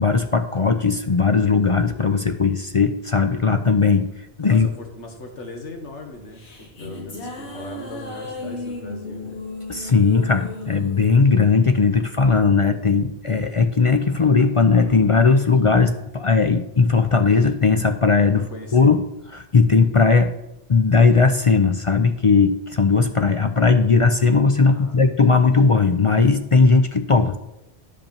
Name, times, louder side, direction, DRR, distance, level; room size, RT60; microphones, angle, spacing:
voice 1, 0.0-4.1 4.4-4.7 9.7-18.4 18.7-19.0 19.3-20.3 20.7-27.4, left 4 dB, 45° left, 8 dB, 0.4 m, -18 dB
voice 2, 4.5-9.4 18.3-18.9 24.7-25.0, left 2 dB, 85° left, 2 dB, 1.9 m, -38 dB
sound 1, 6.2-12.7, left 2 dB, 70° left, 1.8 m, -36 dB
10.5 x 5.4 x 7.1 m, 0.88 s
omnidirectional pair, 1.2 m